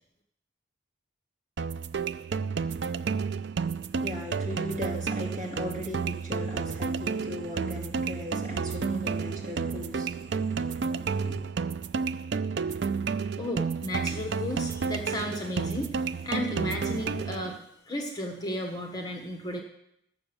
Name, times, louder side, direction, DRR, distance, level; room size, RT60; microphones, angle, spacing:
sound 1, 1.6-17.6, right 5 dB, 60° right, 0.4 m, -31 dB
voice 1, 3.7-11.4, left 1 dB, 35° right, -2 dB, 2.8 m, -38 dB
voice 2, 13.4-19.6, left 1 dB, 20° left, 2 dB, 1.3 m, -34 dB
14.0 x 6.9 x 7.0 m, 0.75 s
head